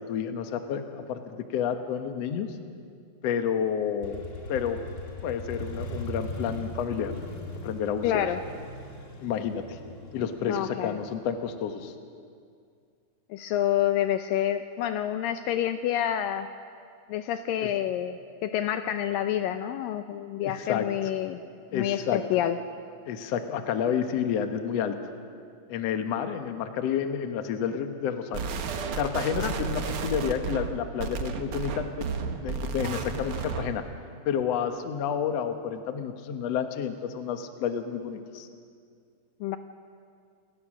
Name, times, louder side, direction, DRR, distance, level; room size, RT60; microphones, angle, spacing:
voice 1, 0.0-2.6 3.2-4.2 4.5-4.8 5.2-7.1 7.6-8.3 9.2-9.8 10.1-11.9 17.6-17.7 20.4-20.9 21.7-22.5 23.1-25.1 25.7-28.5 29.0-32.1 32.4-33.8 34.3-38.5, left 8 dB, 60° left, 7 dB, 1.9 m, -30 dB
Motorcycle, 4.0-11.7, left 1 dB, 35° left, 1.2 m, -39 dB
voice 2, 8.0-8.4 10.5-10.9 13.3-16.5 17.1-21.4 21.7-22.6 29.4-29.5 39.4-39.6, left 11 dB, 80° left, 9 dB, 2.2 m, -28 dB
sound 1, 28.3-33.8, right 5 dB, 85° right, 1.2 m, -32 dB
28.5 x 18.5 x 6.3 m, 2.3 s
omnidirectional pair, 4.3 m